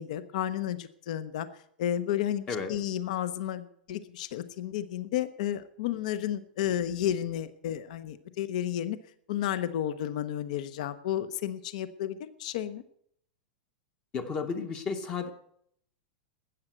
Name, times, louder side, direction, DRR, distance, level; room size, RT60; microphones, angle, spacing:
voice 1, 0.0-1.5 1.8-9.0 9.3-12.8, left 11 dB, 50° left, 13 dB, 0.8 m, -32 dB
voice 2, 14.1-15.3, left 5 dB, 20° left, 8 dB, 0.9 m, -32 dB
13.5 x 8.9 x 7.9 m, 0.69 s
supercardioid pair, 175°, 5 cm